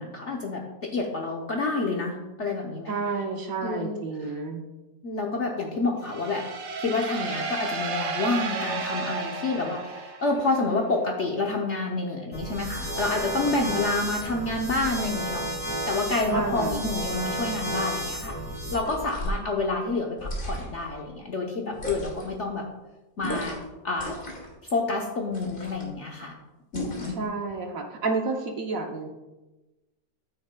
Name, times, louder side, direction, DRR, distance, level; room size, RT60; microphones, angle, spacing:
voice 1, 0.0-3.0 3.6-4.3 5.0-6.4 6.8-18.3 18.7-22.7 23.2-23.6 23.8-24.1 24.7-26.3 26.7-27.2, left 3 dB, 55° left, 0 dB, 0.8 m, -28 dB
voice 2, 2.9-4.6 16.3-16.8 27.2-29.1, right 4 dB, 60° right, 3 dB, 1.0 m, -30 dB
sound 1, 6.0-10.8, right 4 dB, 80° right, 1.7 m, -33 dB
sound 2, 12.3-18.8, right 1 dB, 10° left, 0.8 m, -32 dB
sound 3, 18.7-19.4 20.2-20.9 21.7-22.3 23.2-23.7 23.9-24.5 25.3-25.9 26.7-27.3, equal, 30° left, 1.8 m, -35 dB
9.5 x 8.7 x 2.2 m, 1.1 s
omnidirectional pair, 2.0 m